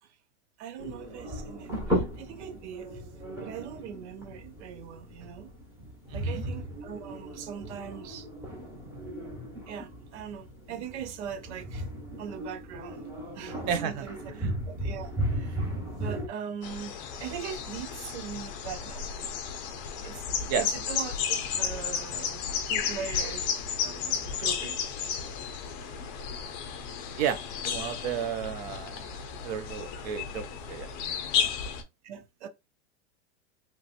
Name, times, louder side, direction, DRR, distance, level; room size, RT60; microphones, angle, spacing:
voice 1, 0.6-3.0 3.4-5.5 6.1-8.3 9.7-11.9 12.2-13.0 13.3-14.2 14.7-15.7 16.0-16.9 17.2-19.1 20.0-23.5 23.8-24.8 32.0-32.5, right 8 dB, 70° right, 0.7 m, -41 dB
sound 1, 0.8-16.3, equal, 5° right, 1.0 m, -36 dB
voice 2, 6.1-6.4 13.7-14.1 14.4-14.5 20.5-20.7 27.2-27.4 27.6-29.1 29.4-30.9 31.3-31.5, right 8 dB, 35° right, 0.4 m, -32 dB
sound 2, 16.6-31.8, left 7 dB, 40° left, 0.6 m, -33 dB
3.0 x 2.8 x 2.5 m
supercardioid pair, 155°, 36 cm